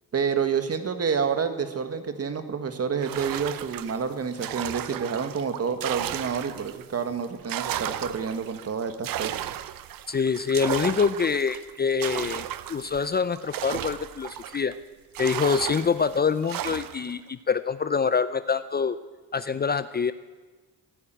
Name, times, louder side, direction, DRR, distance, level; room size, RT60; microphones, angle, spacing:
voice 1, 0.1-9.4, right 6 dB, 45° right, 9 dB, 1.6 m, -28 dB
sound 1, 3.0-6.9 7.2-14.7 15.1-17.1, right 12 dB, 75° right, 0.8 m, -34 dB
voice 2, 10.1-14.7 15.2-19.0 19.3-20.1, left 5 dB, 30° left, 14 dB, 0.5 m, -25 dB
14.0 x 11.0 x 9.1 m, 1.3 s
cardioid pair, 90°, 34 cm